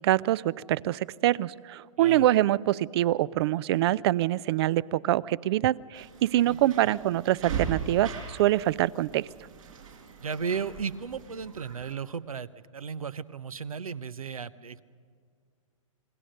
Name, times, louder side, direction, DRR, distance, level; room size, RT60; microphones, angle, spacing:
voice 1, 0.0-9.3, right 14 dB, 50° right, 22 dB, 0.5 m, -25 dB
sound 1, 5.9-11.9, right 6 dB, 75° right, 5.1 m, -39 dB
voice 2, 6.4-6.9 10.2-14.8, right 6 dB, 90° right, 16 dB, 0.9 m, -35 dB
27.0 x 20.0 x 6.5 m, 2.1 s
hypercardioid pair, 120°, 18 cm